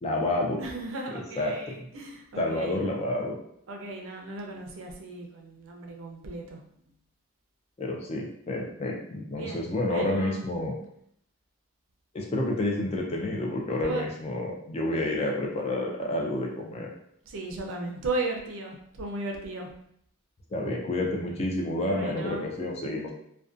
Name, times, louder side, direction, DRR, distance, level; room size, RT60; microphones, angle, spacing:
voice 1, 0.0-0.6 1.1-1.9 2.4-3.4 7.8-10.8 12.1-16.9 20.5-23.1, left 1 dB, 30° left, 0 dB, 0.3 m, -29 dB
voice 2, 0.6-2.9 3.7-6.6 9.3-10.4 13.8-14.1 17.3-19.7 21.9-22.5, right 2 dB, 65° right, 1 dB, 0.4 m, -36 dB
2.5 x 2.2 x 2.4 m, 0.71 s
head